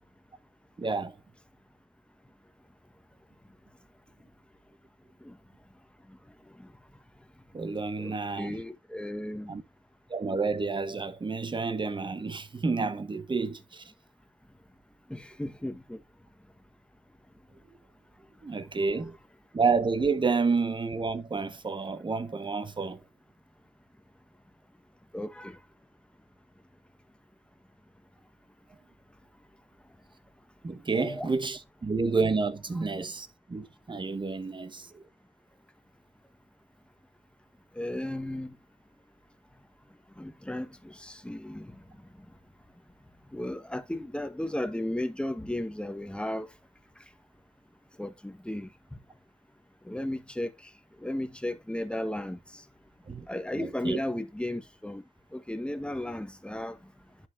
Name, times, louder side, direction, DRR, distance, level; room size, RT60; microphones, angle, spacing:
voice 1, 0.8-1.2 7.5-8.6 9.5-9.6 10.1-13.8 18.4-19.2 19.5-23.0 30.6-35.0 53.1-53.3 53.6-54.0, right 4 dB, 30° right, 1.1 m, -30 dB
voice 2, 8.0-9.5 15.1-16.0 25.1-25.6 30.9-31.3 32.7-32.8 37.8-38.5 40.2-41.8 43.3-46.5 48.0-49.0 49.8-50.5 51.0-52.6 53.3-55.0 55.3-56.8, left 1 dB, 5° left, 1.2 m, -35 dB
11.0 x 4.3 x 2.6 m
supercardioid pair, 50°, 17 cm